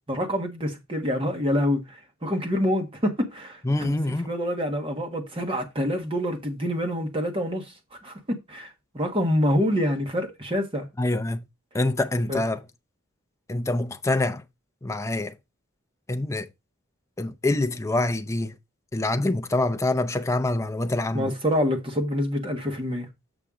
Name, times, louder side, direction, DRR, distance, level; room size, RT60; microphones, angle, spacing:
voice 1, 0.1-3.9 4.3-7.7 8.0-8.1 8.5-10.9 12.3-12.4 21.1-23.1, equal, 25° right, 1.4 m, -26 dB
voice 2, 3.6-4.3 11.0-11.4 11.7-12.6 13.5-14.4 14.8-15.3 16.1-16.5 17.2-18.5 18.9-21.3, left 2 dB, 15° left, 0.5 m, -25 dB
7.3 x 5.6 x 3.7 m
head